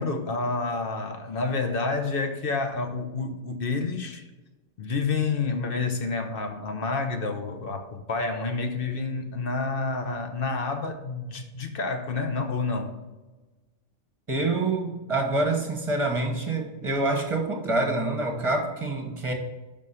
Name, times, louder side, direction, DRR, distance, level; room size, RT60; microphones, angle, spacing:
voice 1, 0.0-4.2 4.8-12.9, left 4 dB, 50° left, 6 dB, 1.0 m, -29 dB
voice 2, 14.3-19.3, right 2 dB, 25° right, 2 dB, 1.2 m, -26 dB
6.3 x 5.5 x 5.5 m, 1.2 s
omnidirectional pair, 1.4 m